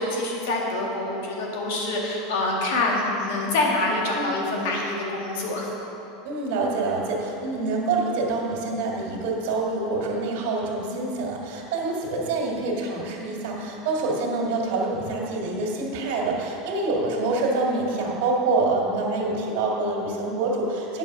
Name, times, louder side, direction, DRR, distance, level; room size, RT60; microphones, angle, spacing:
voice 1, 0.0-5.7, left 2 dB, 75° left, -2 dB, 2.0 m, -26 dB
voice 2, 6.2-21.0, right 3 dB, 65° right, -1 dB, 1.9 m, -26 dB
9.1 x 6.2 x 6.1 m, 2.9 s
supercardioid pair, 145°, 0 cm